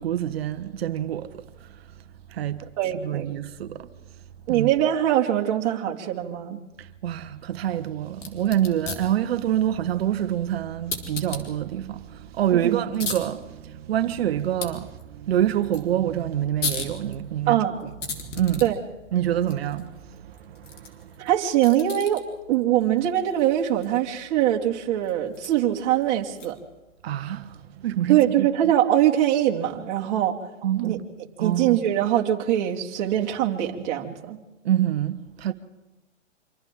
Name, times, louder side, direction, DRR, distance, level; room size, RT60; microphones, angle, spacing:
voice 1, 0.0-1.8 2.3-2.6 2.9-3.9 4.5-4.7 6.8-18.6 19.1-21.3 27.0-28.7 30.6-31.0 31.4-31.8 34.6-35.5, right 11 dB, 55° right, 1.5 m, -27 dB
voice 2, 2.6-3.3 4.5-6.6 12.6-12.8 17.5-17.8 18.6-18.7 21.2-22.2 22.5-26.6 28.1-30.3 30.8-31.0 31.4-34.4, right 12 dB, 35° right, 2.6 m, -22 dB
sound 1, 8.1-26.8, left 4 dB, 75° left, 4.4 m, -39 dB
27.5 x 26.0 x 3.8 m
hypercardioid pair, 140°, 37 cm